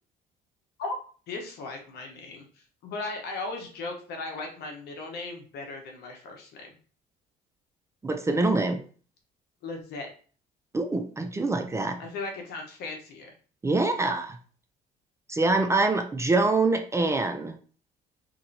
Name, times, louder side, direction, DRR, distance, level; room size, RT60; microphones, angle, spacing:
voice 1, 1.3-2.5 2.8-6.7 9.6-10.1 12.0-13.3, left 3 dB, 75° left, 2 dB, 1.0 m, -37 dB
voice 2, 8.0-8.8 10.7-12.0 13.6-14.4 15.3-17.6, right 3 dB, 15° right, 5 dB, 0.4 m, -25 dB
3.0 x 2.8 x 2.7 m, 0.41 s
cardioid pair, 110°, 17 cm